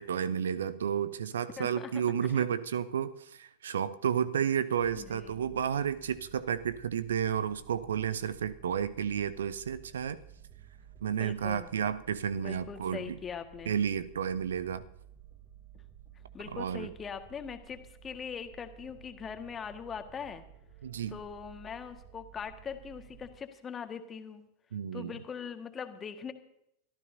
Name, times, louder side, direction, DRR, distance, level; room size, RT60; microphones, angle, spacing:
voice 1, 0.0-10.2 11.0-13.2 13.7-14.8 16.5-16.9 20.8-21.2 24.7-25.2, right 8 dB, 65° right, 18 dB, 0.7 m, -31 dB
voice 2, 1.6-2.0 2.3-2.5 5.0-5.4 11.2-11.7 12.4-13.7 16.3-20.4 21.1-24.4 24.9-26.3, left 7 dB, 20° left, 7 dB, 1.7 m, -41 dB
sound 1, 4.8-23.3, right 10 dB, 45° right, 4.9 m, -54 dB
24.0 x 14.0 x 2.7 m, 0.76 s
figure-of-eight pair, 90°, 0 cm